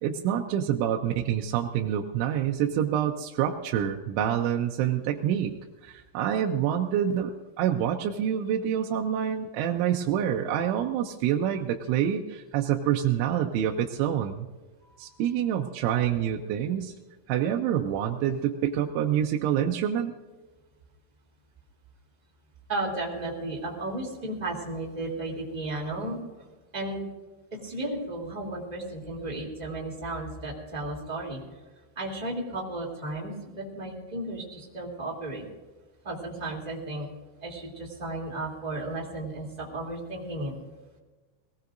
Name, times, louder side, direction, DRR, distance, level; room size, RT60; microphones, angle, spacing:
voice 1, 0.0-5.6 5.8-14.5 15.0-16.9 17.3-20.1, right 10 dB, 80° right, 2 dB, 3.0 m, -27 dB
voice 2, 22.7-26.2 26.7-27.0 27.5-31.4 31.9-35.4 36.0-37.1 37.4-40.5, right 2 dB, 15° right, -3 dB, 1.6 m, -34 dB
22.0 x 18.0 x 2.6 m, 1.3 s
omnidirectional pair, 5.8 m